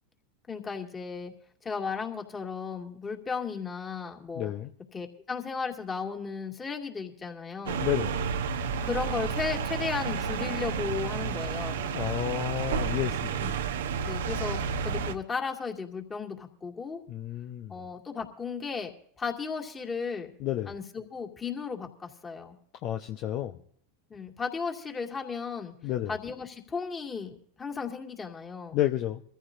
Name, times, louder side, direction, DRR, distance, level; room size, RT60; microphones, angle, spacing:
voice 1, 0.5-1.3 1.6-4.5 4.9-7.9 8.8-11.9 13.3-13.6 14.0-17.0 17.7-18.9 19.2-20.3 20.7-22.6 24.1-25.7 26.1-28.8, left 5 dB, 25° left, 2 dB, 2.4 m, -35 dB
voice 2, 4.3-4.7 7.8-8.2 11.9-13.4 17.1-17.8 20.4-20.7 22.8-23.6 25.8-26.2 28.7-29.2, left 13 dB, 50° left, 6 dB, 0.8 m, -31 dB
sound 1, 7.7-15.1, right 6 dB, 80° right, 0.9 m, -31 dB
23.5 x 14.5 x 2.6 m, 0.63 s
hypercardioid pair, 100°, 0 cm